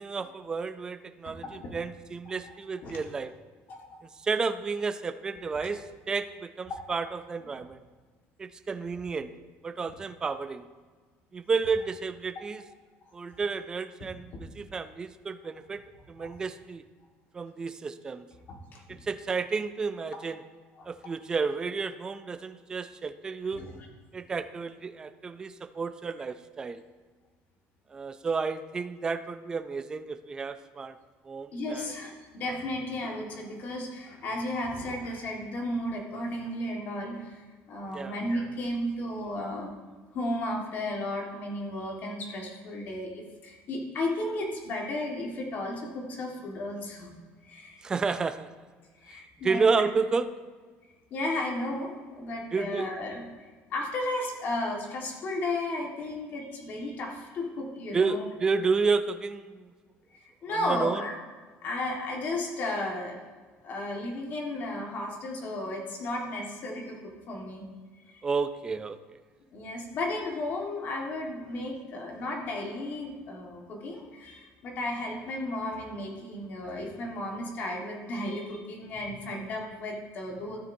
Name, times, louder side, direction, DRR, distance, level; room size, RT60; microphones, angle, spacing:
voice 1, 0.0-3.3 4.0-7.8 8.4-9.3 9.6-10.7 11.3-12.6 13.1-15.8 16.1-16.8 17.3-18.3 18.9-20.4 20.9-23.6 24.1-26.8 27.9-31.0 31.2-31.9 37.9-38.2 47.8-48.5 49.4-50.3 52.5-52.9 57.9-59.7 60.5-61.0 68.2-69.0, right 4 dB, 15° right, 11 dB, 0.3 m, -31 dB
voice 2, 1.2-1.8 2.5-2.6 2.8-3.0 3.7-4.0 6.7-6.9 16.2-16.3 18.5-18.8 20.8-20.9 23.5-23.7 31.5-39.7 40.1-47.1 47.4-47.8 49.0-49.8 51.1-58.3 60.4-61.1 61.6-63.2 63.6-67.6 68.1-68.2 69.5-80.6, left 1 dB, 40° left, 0 dB, 1.5 m, -34 dB
12.5 x 9.4 x 2.7 m, 1.4 s
cardioid pair, 170°, 5 cm